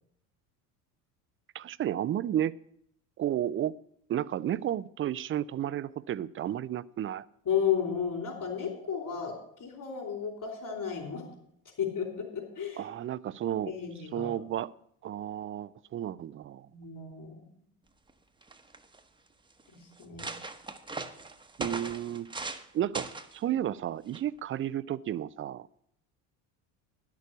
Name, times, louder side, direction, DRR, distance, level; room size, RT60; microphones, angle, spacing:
voice 1, 1.5-2.5 3.2-3.8 4.1-7.2 12.8-13.8 14.1-14.7 15.0-16.7 21.6-22.3 22.7-25.7, right 11 dB, 30° right, 18 dB, 0.4 m, -32 dB
voice 2, 7.4-9.3 9.6-11.2 11.8-12.8 13.6-14.3 16.7-17.4 19.7-20.3, left 8 dB, 45° left, 2 dB, 4.2 m, -33 dB
sound 1, 18.1-18.2 18.4-19.0 19.6-19.7 20.0-22.7 22.9-23.4 24.1-24.4, right 3 dB, 10° right, 0.9 m, -39 dB
10.5 x 6.8 x 8.1 m, 0.70 s
hypercardioid pair, 80°, 45 cm